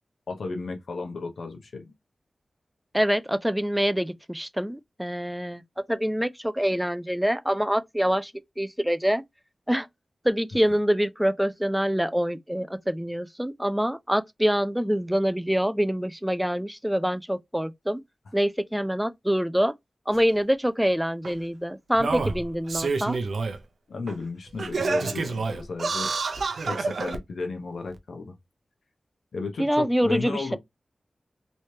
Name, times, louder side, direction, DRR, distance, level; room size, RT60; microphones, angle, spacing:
voice 1, 0.3-1.9 10.5-10.6 23.9-26.1 26.6-28.4 29.3-30.6, left 3 dB, 90° left, 0.9 m, -34 dB
voice 2, 2.9-5.6 5.9-8.3 8.6-9.2 9.7-9.9 10.2-18.0 18.3-19.7 20.1-23.2 29.6-30.6, equal, 5° right, 0.3 m, -25 dB
Singing, 20.1-20.2 21.2-21.3 21.9-23.6 24.1-24.2 24.6-27.2 27.9-28.0, right 4 dB, 85° right, 0.5 m, -28 dB
3.2 x 3.1 x 2.8 m
wide cardioid pair, 115°, 0 cm